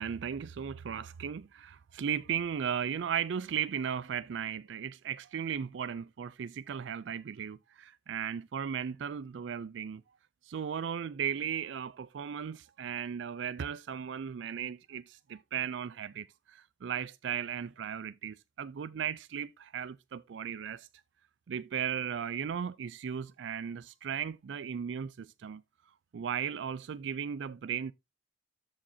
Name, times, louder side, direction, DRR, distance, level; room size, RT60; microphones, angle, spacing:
voice 1, 0.0-10.0 10.5-20.9 21.5-25.6 26.1-27.9, right 8 dB, 70° right, 0.4 m, -36 dB
13.0 x 5.0 x 2.7 m
head